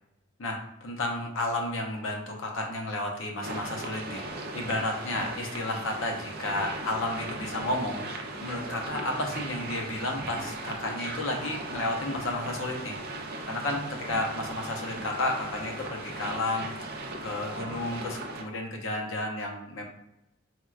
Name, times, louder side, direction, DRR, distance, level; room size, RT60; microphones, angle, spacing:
voice 1, 0.4-13.0 13.5-19.8, left 2 dB, 75° left, 1 dB, 0.6 m, -32 dB
sound 1, 3.4-18.4, right 2 dB, 50° right, 0.4 m, -38 dB
4.2 x 2.2 x 2.3 m, 0.86 s
head